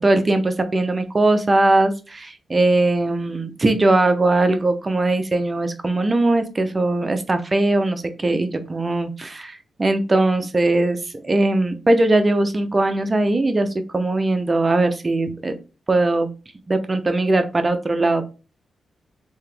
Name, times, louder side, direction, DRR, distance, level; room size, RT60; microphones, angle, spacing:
voice 1, 0.0-11.0 11.2-15.5 15.9-16.3 16.7-18.2, right 2 dB, 25° right, 7 dB, 0.6 m, -20 dB
3.5 x 2.8 x 3.3 m, 0.32 s
wide cardioid pair, 120°, 0 cm